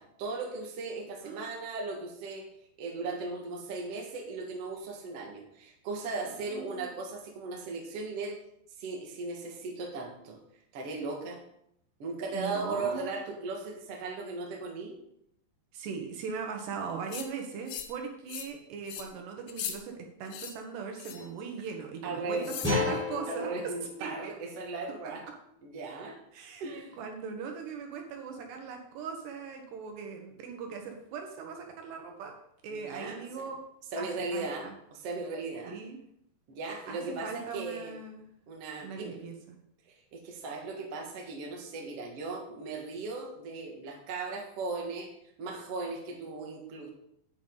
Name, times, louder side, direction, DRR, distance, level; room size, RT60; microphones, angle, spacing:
voice 1, 0.0-2.5 2.8-8.4 8.8-10.4 10.7-11.4 12.0-15.0 22.0-25.2 25.6-26.2 26.6-27.0 32.8-33.4 33.9-35.8 36.5-37.9 38.5-39.2 39.9-45.1 45.4-46.9, right 3 dB, 50° right, 0 dB, 2.1 m, -37 dB
voice 2, 6.5-6.9 12.3-13.2 15.7-22.4 22.7-23.5 24.0-24.3 26.3-32.4 32.6-33.6 34.0-34.7 35.6-36.0 36.9-38.3 38.8-39.6, right 5 dB, 75° right, 3 dB, 3.3 m, -40 dB
sound 1, 17.1-17.3 17.7-18.0 18.3-18.5 18.9-19.1 19.5-19.8 20.3-20.5 21.0-21.3 22.4-22.8, left 9 dB, 80° left, 2.0 m, -39 dB
sound 2, 22.6-25.7, left 3 dB, 5° right, 3.8 m, -35 dB
10.5 x 8.8 x 4.0 m, 0.73 s
omnidirectional pair, 5.1 m